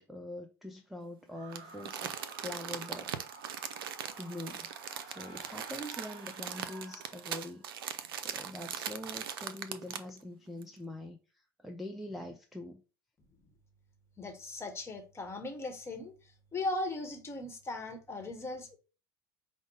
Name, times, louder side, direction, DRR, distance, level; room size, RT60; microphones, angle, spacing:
voice 1, 0.0-2.1 2.4-3.1 3.6-4.7 5.1-7.6 8.2-12.8, left 1 dB, ahead, 0.4 m, -44 dB
sound 1, 1.3-7.7, right 3 dB, 50° right, 1.3 m, -52 dB
Crumpling crinkling, 1.5-10.2 10.6-10.7, right 8 dB, 75° right, 0.4 m, -40 dB
voice 2, 14.2-16.1 16.5-18.8, left 2 dB, 20° left, 1.0 m, -38 dB
5.0 x 2.0 x 3.3 m
hypercardioid pair, 75°, 12 cm